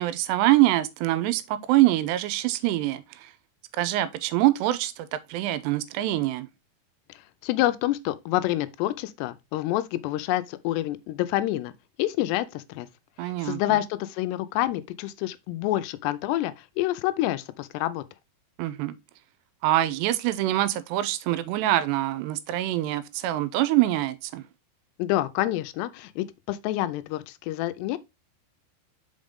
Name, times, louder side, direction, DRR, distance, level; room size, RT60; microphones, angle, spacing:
voice 1, 0.0-3.3 3.8-6.5 13.2-13.8 18.6-19.0 19.6-24.4, right 15 dB, 90° right, 2.8 m, -24 dB
voice 2, 7.4-11.7 12.0-12.9 13.2-18.0 25.0-28.0, left 15 dB, 85° left, 2.7 m, -27 dB
5.6 x 5.3 x 3.5 m
omnidirectional pair, 4.8 m